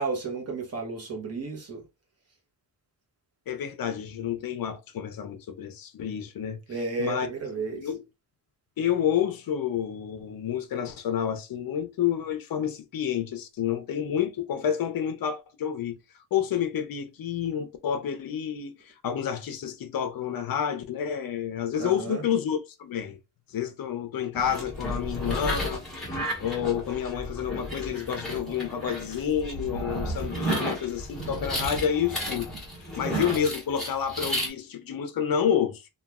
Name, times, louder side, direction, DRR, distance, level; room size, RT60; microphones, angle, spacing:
voice 1, 0.0-1.8 6.7-7.9 21.8-22.2 33.0-33.5, right 3 dB, 35° right, 0.9 m, -33 dB
voice 2, 3.5-6.6 7.0-7.3 7.7-8.0 8.8-16.0 16.3-23.2 23.5-25.8 26.4-32.5 33.0-35.9, left 8 dB, 50° left, 0.6 m, -29 dB
sound 1, 24.3-34.5, equal, ahead, 1.0 m, -33 dB
3.0 x 2.3 x 2.3 m
wide cardioid pair, 150°, 46 cm